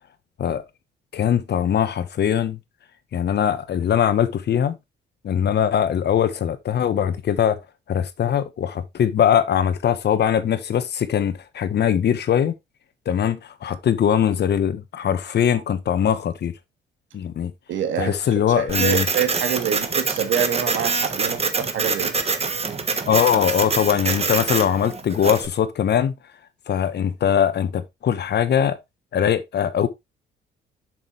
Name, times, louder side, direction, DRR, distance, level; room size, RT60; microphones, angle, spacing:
voice 1, 1.1-2.6 3.1-4.8 5.2-7.6 7.9-12.5 13.1-16.5 17.1-17.5 18.0-19.0 23.1-26.1 26.7-28.8 29.1-29.9, left 9 dB, 60° left, 1.2 m, -21 dB
voice 2, 17.7-22.2, right 8 dB, 75° right, 2.0 m, -26 dB
Printer, 18.7-25.5, right 4 dB, 30° right, 1.3 m, -25 dB
7.3 x 6.2 x 3.3 m
cardioid pair, 90°, 20 cm